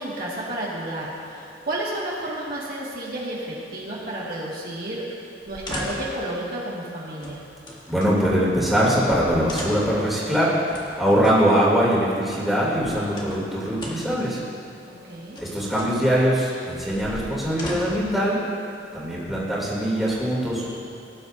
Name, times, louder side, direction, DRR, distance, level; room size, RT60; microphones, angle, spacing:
voice 1, 0.0-5.2 5.5-7.4 14.9-15.4 19.1-19.6, right 1 dB, 55° right, -6 dB, 2.1 m, -32 dB
sound 1, 5.4-6.2 7.2-8.1 8.8-8.9 9.1-10.0 10.7-11.4 12.5-13.5 13.8-14.2 15.1-16.0 16.8-18.1 19.0-19.7, left 1 dB, 25° left, 1.6 m, -37 dB
voice 2, 7.9-14.4 15.4-18.4 18.9-20.7, equal, ahead, -8 dB, 3.0 m, -22 dB
18.5 x 10.5 x 2.7 m, 2.8 s
head